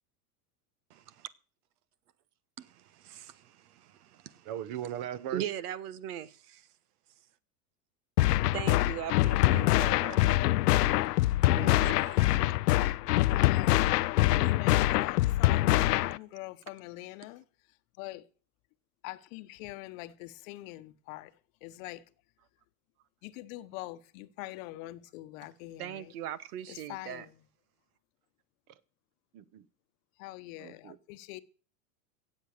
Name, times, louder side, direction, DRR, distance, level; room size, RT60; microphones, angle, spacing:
voice 1, 0.9-1.3 2.6-4.5 5.3-6.7 8.5-10.0 11.6-12.2 25.8-27.2, right 11 dB, 75° right, 1.3 m, -40 dB
voice 2, 4.4-5.5 10.0-10.3 29.3-29.6 30.6-31.0, right 10 dB, 45° right, 1.2 m, -39 dB
sound 1, 8.2-16.2, left 16 dB, 90° left, 0.7 m, -24 dB
voice 3, 13.3-13.7 14.2-17.4 18.0-18.3 19.0-21.3 21.6-22.0 23.2-26.1 26.7-27.4 30.2-31.4, left 18 dB, 60° left, 1.1 m, -44 dB
17.5 x 7.8 x 6.7 m
supercardioid pair, 130°, 46 cm